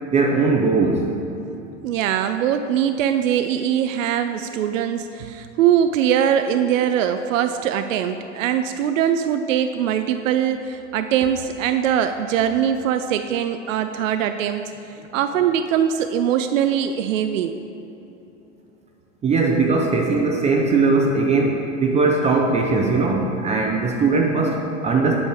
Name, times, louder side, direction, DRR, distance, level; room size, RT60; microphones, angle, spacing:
voice 1, 0.1-1.1 19.2-25.1, right 3 dB, 20° right, 1 dB, 0.5 m, -19 dB
voice 2, 1.8-14.6 15.1-17.5, right 9 dB, 80° right, 8 dB, 0.5 m, -21 dB
8.4 x 5.3 x 4.7 m, 2.9 s
hypercardioid pair, 110°, 38 cm